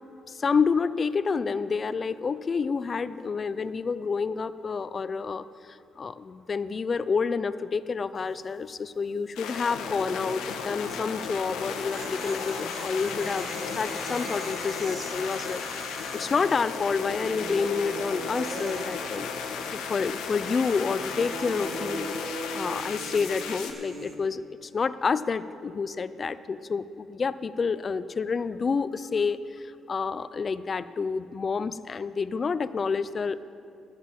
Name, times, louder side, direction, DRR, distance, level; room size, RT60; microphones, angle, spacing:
voice 1, 0.3-19.3 19.7-22.2 22.5-33.4, left 5 dB, 40° left, 14 dB, 0.3 m, -29 dB
sound 1, 8.1-8.5 8.8-8.9 11.5-19.9 20.1-24.2, right 2 dB, 50° right, 1.7 m, -40 dB
sound 2, 9.4-23.7, left 6 dB, 90° left, 1.0 m, -35 dB
12.0 x 7.4 x 7.4 m, 2.7 s
cardioid pair, 90°, 0 cm